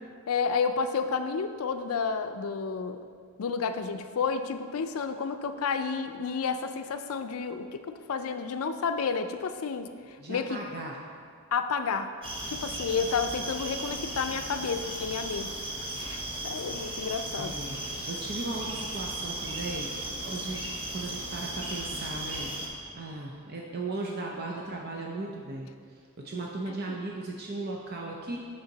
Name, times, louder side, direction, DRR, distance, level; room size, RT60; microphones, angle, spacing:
voice 1, 0.3-3.0 3.4-10.6 11.5-12.1 12.5-15.6 16.0-17.6 26.7-27.0, left 5 dB, 70° left, 8 dB, 0.4 m, -31 dB
voice 2, 10.2-11.0 17.4-17.7 18.1-22.5 22.8-25.7 26.2-28.4, right 2 dB, 45° right, -1 dB, 0.6 m, -37 dB
sound 1, 12.2-22.7, right 1 dB, 25° right, 1.0 m, -36 dB
8.0 x 5.7 x 3.9 m, 2.1 s
head